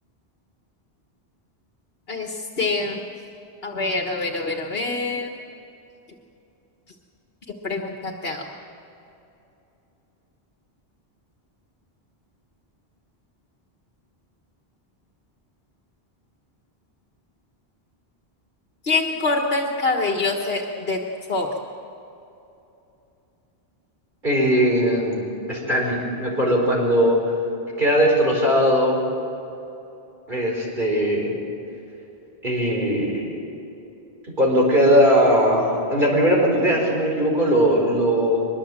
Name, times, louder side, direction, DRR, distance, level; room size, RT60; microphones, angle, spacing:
voice 1, 2.1-3.0 3.6-5.3 7.6-8.5 18.8-21.0 21.3-21.5, left 3 dB, 70° left, 2 dB, 1.7 m, -25 dB
voice 2, 24.2-27.3 27.8-29.0 30.3-31.3 32.4-33.3 34.4-38.5, equal, 50° right, -1 dB, 4.5 m, -19 dB
23.5 x 21.5 x 7.6 m, 2.9 s
omnidirectional pair, 1.0 m